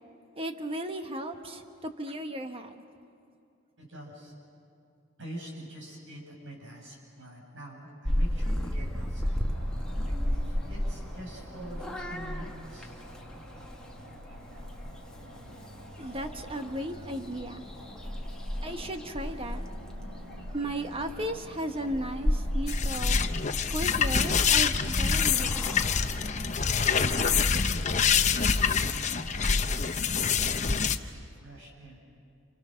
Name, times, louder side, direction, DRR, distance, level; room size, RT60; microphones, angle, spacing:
voice 1, 0.4-1.6 2.0-2.8 16.0-17.6 18.6-19.6 20.5-23.2 23.7-25.8, right 1 dB, 25° right, 6 dB, 1.4 m, -35 dB
voice 2, 3.8-4.3 5.2-9.4 9.9-12.9 27.1-27.5 27.9-32.0, right 1 dB, 65° right, -1 dB, 7.3 m, -46 dB
Purr / Meow, 8.0-27.5, equal, 5° left, 1.6 m, -35 dB
sound 1, 9.5-24.4, equal, 85° right, 7.8 m, -49 dB
sound 2, 22.7-31.0, left 6 dB, 35° left, 0.8 m, -26 dB
29.0 x 28.5 x 6.5 m, 2.5 s
head